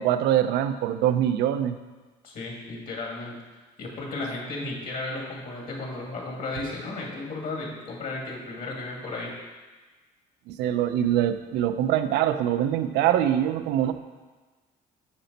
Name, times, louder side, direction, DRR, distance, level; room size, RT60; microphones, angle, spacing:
voice 1, 0.0-1.8 10.5-13.9, right 11 dB, 85° right, 10 dB, 0.5 m, -24 dB
voice 2, 2.2-3.4 3.8-9.3, left 2 dB, 55° left, -2 dB, 2.2 m, -34 dB
8.6 x 5.1 x 4.0 m, 1.3 s
cardioid pair, 110°, 17 cm